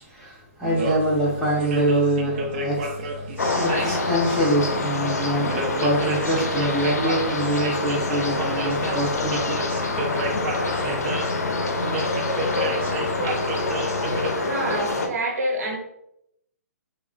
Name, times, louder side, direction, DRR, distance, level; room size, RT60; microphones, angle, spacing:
voice 1, 0.0-9.6, right 1 dB, ahead, -9 dB, 0.6 m, -25 dB
sound 1, 0.6-14.3, right 1 dB, 40° right, 0.5 m, -31 dB
sound 2, 3.4-15.1, left 3 dB, 90° left, 0.5 m, -26 dB
voice 2, 14.4-15.8, right 1 dB, 80° right, -1 dB, 1.0 m, -27 dB
3.4 x 2.1 x 2.4 m, 0.78 s
hypercardioid pair, 150°, 9 cm